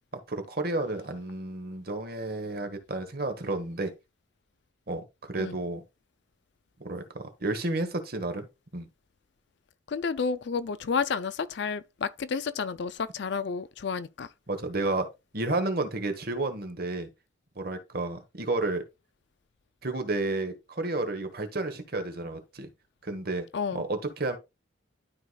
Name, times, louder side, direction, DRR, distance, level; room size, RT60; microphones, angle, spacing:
voice 1, 0.3-3.9 4.9-5.8 6.8-8.5 8.7-8.9 14.5-15.1 15.3-17.1 17.5-18.8 19.8-22.7 23.0-23.4 23.7-24.4, right 2 dB, 50° right, 1.3 m, -31 dB
voice 2, 9.9-14.3 23.5-23.8, left 5 dB, 60° left, 0.4 m, -31 dB
12.5 x 4.9 x 2.3 m
head